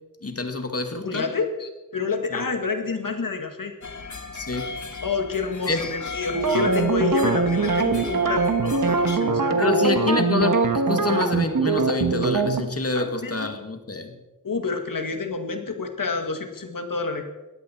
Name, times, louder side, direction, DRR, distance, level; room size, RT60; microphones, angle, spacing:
voice 1, 0.2-1.2 2.3-2.4 4.3-4.8 5.7-5.8 9.6-10.5 10.9-14.2, left 3 dB, 45° left, 6 dB, 2.0 m, -26 dB
voice 2, 1.0-3.7 5.0-9.9 12.9-13.5 14.4-17.3, left 4 dB, 85° left, 6 dB, 2.0 m, -28 dB
sound 1, 3.8-9.2, left 4 dB, 65° left, 1.6 m, -36 dB
sound 2, 6.3-12.7, right 4 dB, 80° right, 1.4 m, -22 dB
19.0 x 15.0 x 4.5 m, 1.1 s
wide cardioid pair, 65°, 32 cm